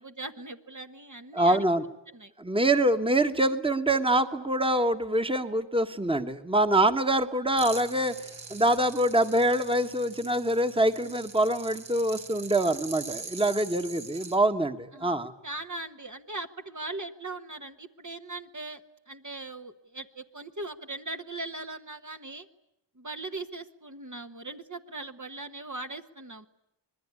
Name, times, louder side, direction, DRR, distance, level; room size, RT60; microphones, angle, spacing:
voice 1, 0.0-1.6 2.1-2.3 14.9-15.1 15.4-18.8 19.1-22.5 23.0-26.5, right 2 dB, 40° right, 6 dB, 1.3 m, -39 dB
voice 2, 1.3-1.8 2.4-8.1 8.5-15.3, right 1 dB, 10° right, 8 dB, 1.5 m, -25 dB
sound 1, 7.6-14.4, right 4 dB, 75° right, 3.7 m, -43 dB
26.0 x 20.5 x 9.7 m, 0.83 s
wide cardioid pair, 75°, 47 cm